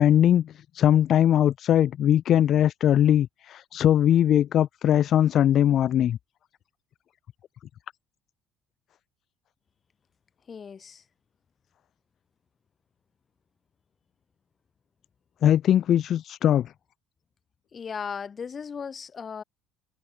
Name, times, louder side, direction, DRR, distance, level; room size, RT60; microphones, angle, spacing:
voice 1, 0.0-6.2 15.4-16.7, left 10 dB, 55° left, 1.0 m, -21 dB
voice 2, 10.5-11.0 17.7-19.4, left 6 dB, 35° left, 6.3 m, -36 dB
supercardioid pair, 95°, 0 cm